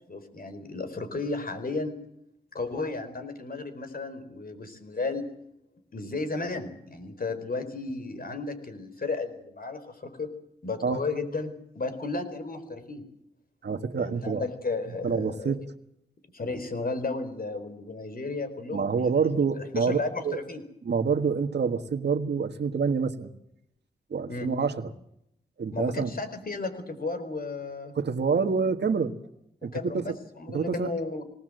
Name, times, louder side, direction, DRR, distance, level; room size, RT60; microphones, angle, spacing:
voice 1, 0.1-1.9 2.5-5.3 5.9-10.3 10.6-13.0 14.0-15.6 16.3-20.6 24.3-24.5 25.7-27.9 29.6-31.2, left 3 dB, 60° left, 9 dB, 4.4 m, -34 dB
voice 2, 13.6-14.4 15.0-15.6 18.7-20.4 20.8-23.3 24.1-24.9 25.6-26.1 28.0-29.1 29.6-30.2 30.5-31.0, right 5 dB, 80° right, 7 dB, 1.6 m, -27 dB
21.0 x 19.0 x 7.8 m, 0.77 s
cardioid pair, 65°, 17 cm